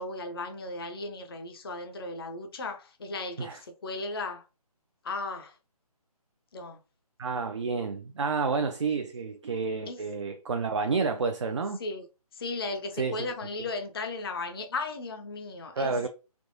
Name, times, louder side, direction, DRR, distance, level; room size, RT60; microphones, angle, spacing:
voice 1, 0.0-4.4 5.0-5.6 6.5-6.8 9.9-10.0 11.8-12.1 12.3-16.1, left 3 dB, 40° left, 0.5 m, -36 dB
voice 2, 7.2-11.8 13.0-13.3 15.7-16.1, right 4 dB, 50° right, 0.4 m, -30 dB
3.5 x 2.8 x 2.5 m
figure-of-eight pair, 150°, 20 cm